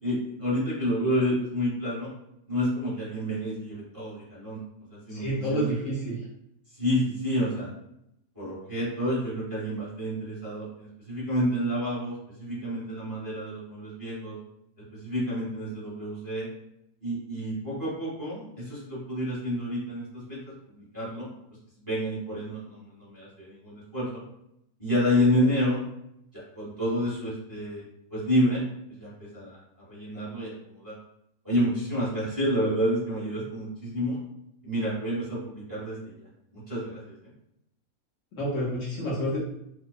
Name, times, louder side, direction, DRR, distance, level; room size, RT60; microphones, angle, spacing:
voice 1, 0.0-2.1 2.5-4.6 4.9-5.7 6.8-7.7 8.3-14.4 15.0-16.5 17.0-20.4 20.7-21.3 21.8-24.2 24.8-25.8 26.3-27.8 28.1-28.6 29.0-29.6 29.9-30.9 31.4-34.2 34.6-36.3 36.5-37.1, equal, 15° right, -8 dB, 1.1 m, -29 dB
voice 2, 5.1-6.2 38.3-39.4, equal, 65° left, -7 dB, 1.0 m, -29 dB
2.7 x 2.1 x 2.3 m, 0.79 s
omnidirectional pair, 1.5 m